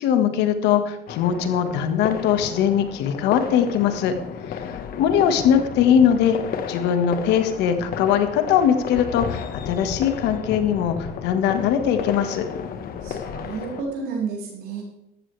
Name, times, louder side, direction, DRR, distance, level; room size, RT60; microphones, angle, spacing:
voice 1, 0.0-4.1 4.5-6.4 6.7-12.4, left 8 dB, 90° left, 8 dB, 1.6 m, -21 dB
sound 1, 1.1-13.8, left 7 dB, 60° left, 1.4 m, -33 dB
voice 2, 13.0-14.8, right 5 dB, 80° right, -1 dB, 5.6 m, -31 dB
14.5 x 13.0 x 3.4 m, 0.86 s
cardioid pair, 110°, 17 cm